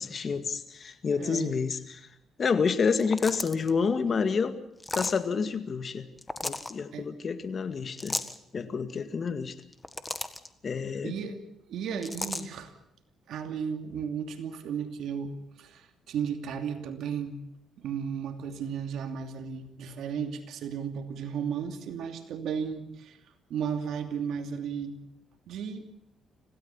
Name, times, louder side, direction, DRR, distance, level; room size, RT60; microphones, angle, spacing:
voice 1, 0.0-2.0 2.4-4.5 4.9-6.1 6.4-8.2 8.5-9.5 10.6-11.1, left 5 dB, 45° left, 10 dB, 2.0 m, -28 dB
voice 2, 1.1-1.5 6.9-7.1 11.0-11.4 11.7-12.7 13.3-17.4 17.8-23.2 23.5-25.0 25.5-25.8, right 7 dB, 75° right, 7 dB, 2.7 m, -34 dB
sound 1, 2.9-3.7 4.8-5.2 6.2-6.7 8.0-8.4 9.6-10.5 12.0-12.4, left 2 dB, 15° left, 1.6 m, -34 dB
26.5 x 17.0 x 7.2 m, 0.76 s
cardioid pair, 90°, 0 cm